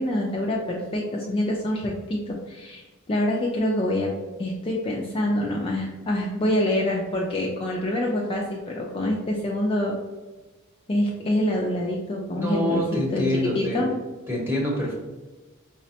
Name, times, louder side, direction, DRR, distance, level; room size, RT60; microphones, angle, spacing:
voice 1, 0.0-2.8 3.1-4.1 4.4-10.0 10.9-12.8 13.1-13.2 13.5-13.9, left 1 dB, 25° left, -2 dB, 0.4 m, -26 dB
voice 2, 12.3-13.8 14.3-14.9, left 1 dB, 10° right, -4 dB, 0.9 m, -26 dB
4.9 x 2.1 x 2.7 m, 1.2 s
head